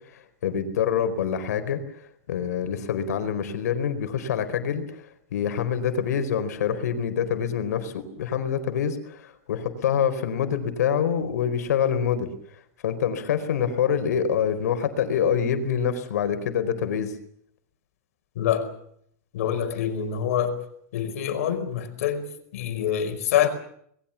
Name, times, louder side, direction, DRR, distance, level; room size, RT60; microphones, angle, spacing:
voice 1, 0.1-1.8 2.3-5.0 5.3-12.3 12.8-17.1, left 8 dB, 90° left, 4.5 m, -26 dB
voice 2, 18.3-18.7 19.3-20.6 20.9-23.5, left 9 dB, 65° left, 5.0 m, -26 dB
26.5 x 21.0 x 7.2 m
supercardioid pair, 175°, 9 cm